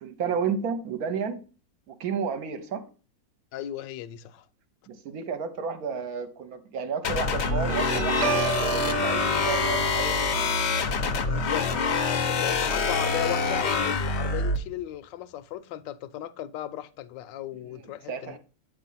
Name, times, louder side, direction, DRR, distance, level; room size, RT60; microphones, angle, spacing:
voice 1, 0.0-1.4 1.9-2.8 4.9-10.3 18.1-18.4, right 6 dB, 60° right, 1.2 m, -31 dB
voice 2, 3.5-4.5 11.3-18.4, left 12 dB, 80° left, 1.2 m, -36 dB
sound 1, 7.0-14.6, left 4 dB, 60° left, 0.7 m, -26 dB
Guitar, 7.4-14.4, right 5 dB, 75° right, 0.5 m, -33 dB
8.4 x 3.1 x 5.4 m
omnidirectional pair, 2.0 m